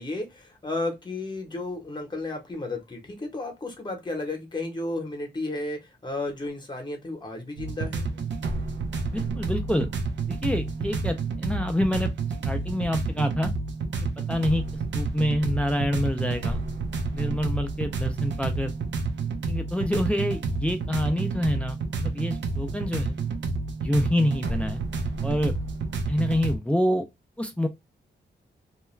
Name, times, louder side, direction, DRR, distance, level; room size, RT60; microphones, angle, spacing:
voice 1, 0.0-8.1, left 2 dB, 25° left, 0.8 m, -33 dB
sound 1, 7.6-26.6, right 4 dB, 85° right, 0.5 m, -30 dB
voice 2, 9.1-9.9 10.3-12.1 12.4-13.5 14.3-14.6 14.9-16.6 17.1-18.7 19.5-23.1 23.8-24.8 25.2-25.5 26.1-27.0 27.4-27.7, left 1 dB, 5° left, 0.3 m, -27 dB
2.3 x 2.2 x 3.0 m
wide cardioid pair, 130°, 18 cm